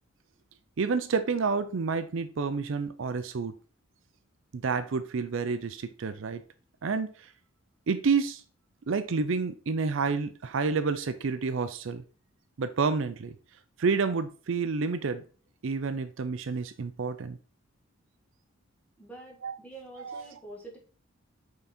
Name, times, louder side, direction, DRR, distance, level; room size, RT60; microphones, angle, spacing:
voice 1, 0.8-3.5 4.5-6.4 6.8-7.3 7.9-8.4 8.9-12.0 12.6-13.4 13.8-15.2 15.6-17.4 19.4-19.5 20.0-20.2, right 4 dB, 65° right, 0.5 m, -29 dB
voice 2, 19.0-20.8, right 2 dB, 5° left, 1.5 m, -46 dB
5.7 x 3.9 x 4.2 m
head